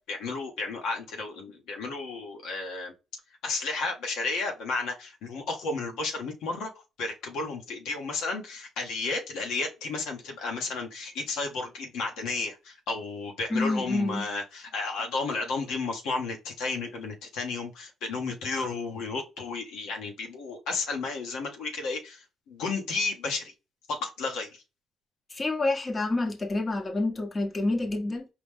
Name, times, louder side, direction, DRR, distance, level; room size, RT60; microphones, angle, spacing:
voice 1, 0.1-2.9 3.4-6.7 7.0-23.5 23.9-24.6, left 3 dB, 90° left, 1.2 m, -32 dB
voice 2, 13.5-14.3 18.6-18.7 25.3-28.3, left 2 dB, 30° left, 1.0 m, -28 dB
4.9 x 2.3 x 3.6 m
cardioid pair, 90°, 0 cm